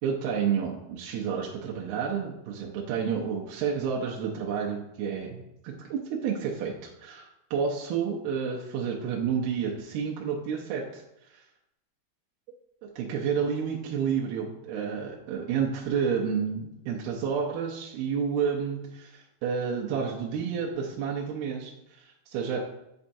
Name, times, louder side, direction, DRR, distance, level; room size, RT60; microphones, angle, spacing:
voice 1, 0.0-11.0 11.3-11.4 13.0-22.6, right 6 dB, 80° right, -2 dB, 2.7 m, -30 dB
8.5 x 5.7 x 2.7 m, 0.87 s
omnidirectional pair, 4.6 m